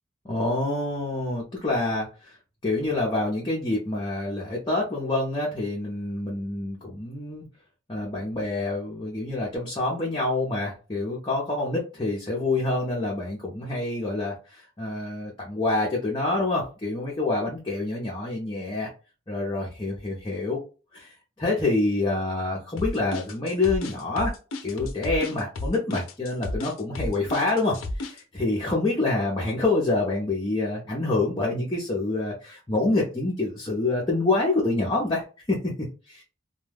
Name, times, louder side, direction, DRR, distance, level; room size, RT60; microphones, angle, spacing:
voice 1, 0.3-2.4 2.6-7.4 7.9-18.9 19.3-20.6 20.9-21.1 21.4-24.3 24.6-35.7 36.1-36.2, left 2 dB, 25° left, -4 dB, 0.6 m, -27 dB
sound 1, 22.8-28.2, left 2 dB, 85° left, 0.5 m, -32 dB
2.3 x 2.2 x 3.3 m, 0.33 s
head